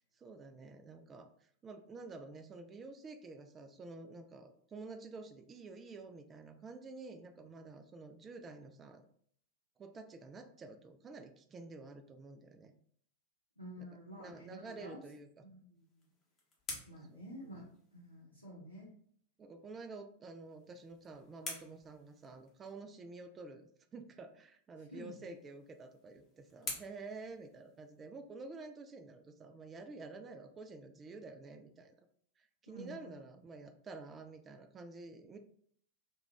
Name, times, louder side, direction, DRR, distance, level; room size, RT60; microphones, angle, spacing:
voice 1, 0.1-9.1 9.8-12.7 13.8-13.9 14.2-15.3 17.1-17.2 19.4-32.1 32.4-35.4, right 3 dB, 20° right, 7 dB, 0.3 m, -50 dB
voice 2, 13.6-15.0 15.4-15.8 16.9-17.7 17.9-18.9 24.9-25.3 32.7-33.1, equal, 85° left, -6 dB, 0.6 m, -50 dB
sound 1, 15.7-18.2 20.4-22.8 25.0-28.2, left 2 dB, 20° left, 0.8 m, -50 dB
2.3 x 2.2 x 3.1 m, 0.63 s
figure-of-eight pair, 90°, 0 cm